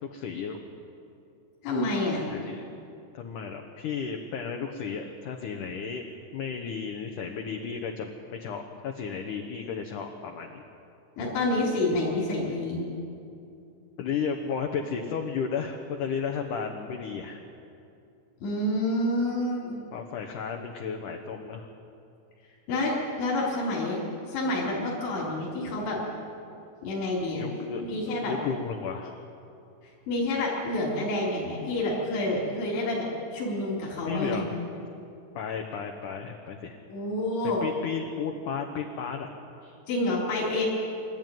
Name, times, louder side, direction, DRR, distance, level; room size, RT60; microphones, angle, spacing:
voice 1, 0.0-0.6 2.3-2.7 3.1-10.6 14.0-17.4 19.9-21.7 27.3-27.8 28.1-29.2 34.1-34.6 35.3-36.8 37.6-39.3 39.6-39.8, left 6 dB, 70° left, 2 dB, 2.0 m, -33 dB
voice 2, 1.6-2.2 11.2-12.8 18.4-19.9 22.7-24.0 24.3-26.0 26.8-27.4 27.8-28.3 30.1-34.4 36.9-37.6 39.9-40.7, left 2 dB, 85° left, -5 dB, 6.1 m, -28 dB
27.0 x 13.0 x 9.3 m, 2.6 s
omnidirectional pair, 5.1 m